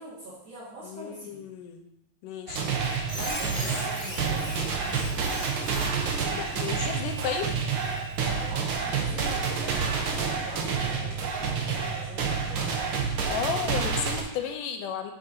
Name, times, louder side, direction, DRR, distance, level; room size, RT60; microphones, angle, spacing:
voice 1, 0.0-1.4 3.1-5.6 8.2-12.9, right 1 dB, 40° right, -10 dB, 2.6 m, -42 dB
voice 2, 0.8-1.8 2.2-2.7 6.3-7.5 13.3-15.1, left 7 dB, 85° left, 5 dB, 2.4 m, -33 dB
Squeak, 2.5-8.5, left 1 dB, 50° left, 0.4 m, -40 dB
sound 1, 2.5-14.2, right 5 dB, 75° right, 1.2 m, -29 dB
12.0 x 5.6 x 2.8 m, 0.85 s
omnidirectional pair, 3.7 m